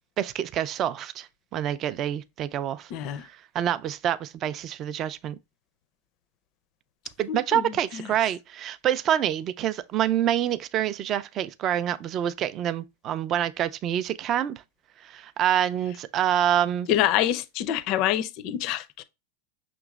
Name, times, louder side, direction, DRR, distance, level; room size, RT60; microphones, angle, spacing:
voice 1, 0.2-2.9 3.5-5.4 7.2-14.5 15.0-16.9, right 10 dB, 30° right, 0.3 m, -27 dB
voice 2, 2.9-3.3 7.3-8.1 16.9-19.0, left 12 dB, 45° left, 0.4 m, -27 dB
6.0 x 3.0 x 2.3 m
supercardioid pair, 150°, 0 cm